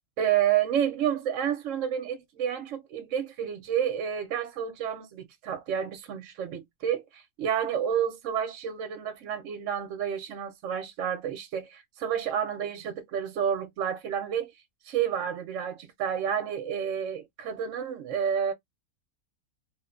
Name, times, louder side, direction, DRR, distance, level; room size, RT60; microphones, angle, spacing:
voice 1, 0.2-14.5 14.8-18.5, right 9 dB, 70° right, 0.9 m, -30 dB
2.8 x 2.1 x 2.4 m
omnidirectional pair, 1.5 m